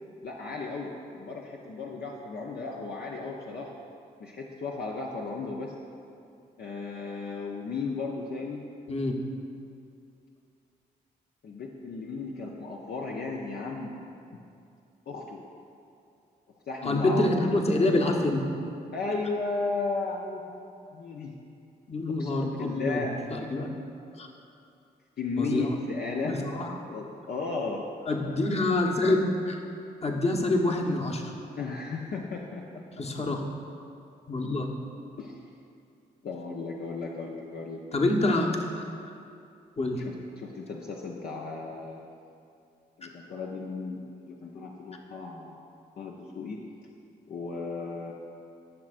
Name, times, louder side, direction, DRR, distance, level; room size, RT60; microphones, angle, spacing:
voice 1, 0.2-3.8 4.2-5.7 6.6-8.6 11.4-14.0 15.1-15.4 16.7-17.6 18.9-21.3 22.1-23.1 25.2-26.5 26.9-27.8 31.6-32.8 35.2-35.4 36.2-37.8 40.0-42.1 43.0-45.6 46.0-46.6 47.3-48.1, left 3 dB, 55° left, -2 dB, 0.7 m, -35 dB
voice 2, 16.8-18.4 21.9-23.0 23.3-23.7 24.2-24.3 25.4-25.7 26.2-26.7 28.1-29.6 30.0-31.3 33.0-33.4 34.3-34.7 37.9-38.8 39.8-40.0, left 2 dB, 35° left, 1 dB, 1.1 m, -26 dB
13.0 x 6.1 x 2.5 m, 2.5 s
supercardioid pair, 45°, 19 cm